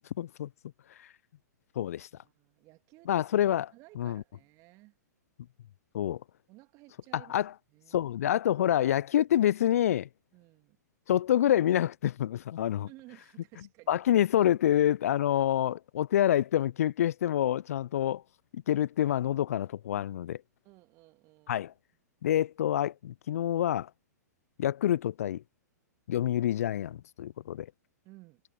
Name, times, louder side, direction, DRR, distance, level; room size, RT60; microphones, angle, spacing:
voice 1, 0.2-0.5 1.0-1.1 1.8-2.1 3.1-3.7 4.0-4.2 5.9-6.2 7.3-7.5 7.9-10.1 11.1-12.9 13.9-18.2 18.5-20.4 21.5-21.7 22.2-23.9 24.6-25.4 26.1-27.7, left 11 dB, 55° left, 0.4 m, -27 dB
voice 2, 2.1-3.1 3.7-5.0 6.5-7.4 7.7-8.0 10.3-10.8 12.9-14.0 20.6-21.7 28.0-28.4, right 21 dB, 35° right, 2.5 m, -56 dB
figure-of-eight pair, 110°, 9 cm